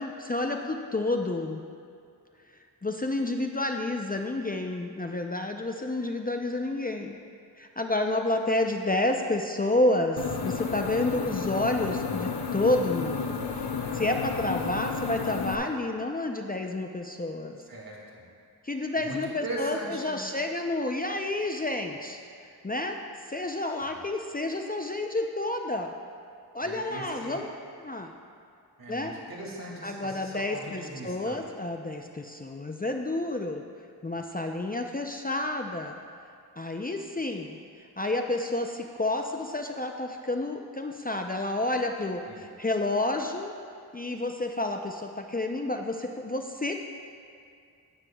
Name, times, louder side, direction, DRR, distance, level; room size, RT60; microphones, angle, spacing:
voice 1, 0.0-1.6 2.8-7.2 7.6-13.7 13.9-17.6 18.6-22.2 22.6-23.0 23.3-25.9 26.5-27.5 27.8-28.1 28.9-29.1 29.8-33.7 34.0-35.9 36.6-43.5 43.9-46.7, left 2 dB, 25° left, 3 dB, 0.5 m, -30 dB
sound 1, 10.2-15.6, left 5 dB, 80° left, 0.7 m, -32 dB
voice 2, 17.7-18.2 19.0-20.2 26.6-27.4 28.8-31.4 42.2-42.4, right 1 dB, 60° right, -3 dB, 2.4 m, -39 dB
12.0 x 9.6 x 2.3 m, 2.4 s
cardioid pair, 40°, 39 cm